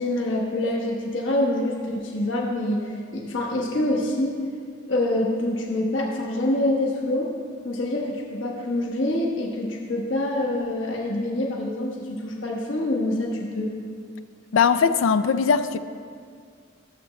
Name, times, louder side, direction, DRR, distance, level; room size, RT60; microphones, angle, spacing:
voice 1, 0.0-4.3 4.9-7.3 7.6-13.7, left 1 dB, 70° left, -2 dB, 1.2 m, -26 dB
voice 2, 14.5-15.8, left 6 dB, 85° left, 13 dB, 0.4 m, -20 dB
13.5 x 7.3 x 3.1 m, 2.1 s
head